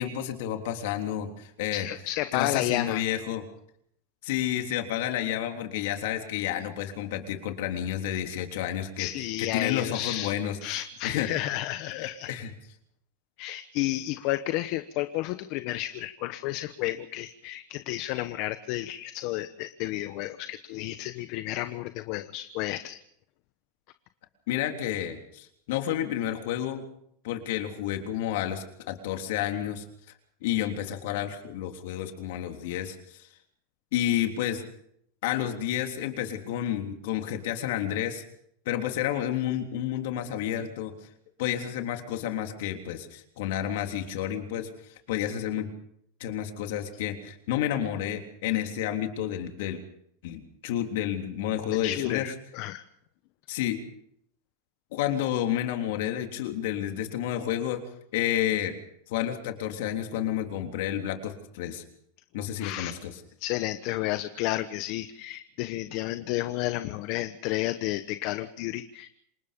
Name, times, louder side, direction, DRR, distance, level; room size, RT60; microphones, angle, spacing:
voice 1, 0.0-1.9 2.3-3.4 4.2-9.1 9.4-10.6 11.0-11.3 11.9-12.5 24.5-26.9 27.2-29.8 30.4-33.3 33.9-34.6 35.2-38.2 38.6-40.9 41.4-44.7 45.1-45.7 46.2-49.8 50.2-52.2 53.5-53.8 54.9-57.8 58.1-58.8 59.1-61.8 62.3-63.1, left 11 dB, 65° left, 4 dB, 3.5 m, -30 dB
voice 2, 1.7-3.0 9.0-12.3 13.4-23.0 51.7-52.8 62.3-62.9 63.4-69.1, left 16 dB, 50° left, 11 dB, 1.1 m, -32 dB
27.5 x 19.5 x 5.3 m, 0.72 s
supercardioid pair, 135°, 0 cm